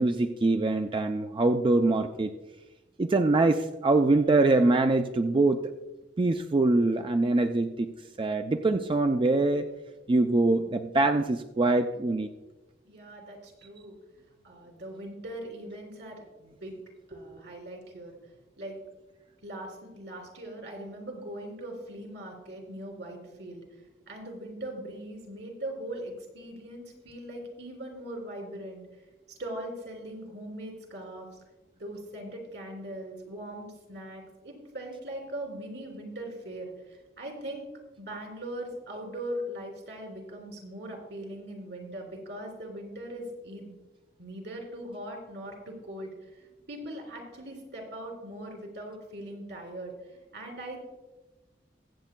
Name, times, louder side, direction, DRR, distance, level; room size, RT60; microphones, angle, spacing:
voice 1, 0.0-2.3 3.0-5.6 6.2-7.9 8.2-9.7 10.1-12.3, right 2 dB, 30° right, 7 dB, 0.4 m, -24 dB
voice 2, 12.8-13.9 14.4-16.8 17.1-18.1 18.6-18.8 19.4-23.6 24.1-28.8 29.4-31.3 31.8-37.7 38.0-43.7 44.2-46.3 46.7-49.9 50.3-50.8, right 1 dB, 80° right, 0 dB, 3.0 m, -40 dB
22.0 x 7.9 x 2.2 m, 1.1 s
head